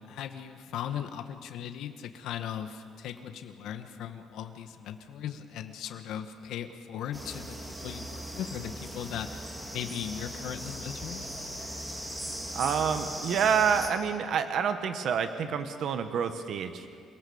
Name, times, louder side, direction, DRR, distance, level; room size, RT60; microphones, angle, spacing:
voice 1, 0.1-11.3, left 9 dB, 75° left, 7 dB, 1.5 m, -38 dB
sound 1, 7.1-13.9, equal, 10° right, 2.0 m, -39 dB
voice 2, 12.5-16.8, right 7 dB, 55° right, 9 dB, 1.3 m, -28 dB
28.5 x 19.0 x 7.2 m, 2.2 s
cardioid pair, 150°, 0 cm